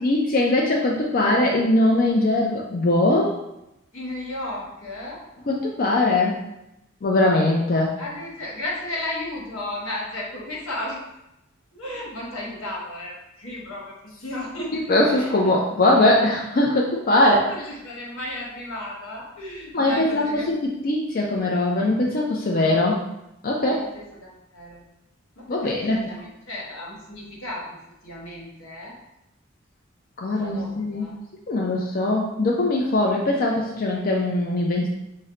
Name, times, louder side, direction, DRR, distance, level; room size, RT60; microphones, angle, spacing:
voice 1, 0.0-3.3 5.5-6.3 7.0-7.9 14.9-17.4 19.7-23.0 23.4-23.8 25.5-26.0 30.2-31.1 31.5-34.9, left 1 dB, 45° left, -2 dB, 0.5 m, -21 dB
voice 2, 3.9-5.2 8.0-11.0 11.7-15.6 17.1-20.5 23.7-24.8 25.4-27.7 28.0-28.9 30.3-31.1, left 1 dB, 85° left, -3 dB, 1.3 m, -34 dB
5.5 x 2.1 x 3.7 m, 0.88 s
head